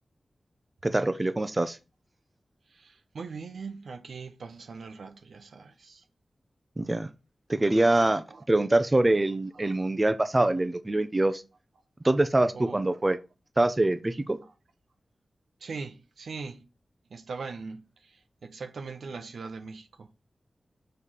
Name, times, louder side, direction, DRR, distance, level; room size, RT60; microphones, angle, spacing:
voice 1, 0.8-1.8 6.8-7.1 7.5-11.4 12.0-13.2 13.6-14.4, right 2 dB, 25° right, 0.5 m, -24 dB
voice 2, 2.7-6.0 8.3-8.4 9.6-9.8 12.5-13.0 14.4-14.5 15.6-16.6 17.1-20.3, right 4 dB, 90° right, 0.9 m, -41 dB
6.7 x 3.3 x 5.6 m
wide cardioid pair, 95°, 0 cm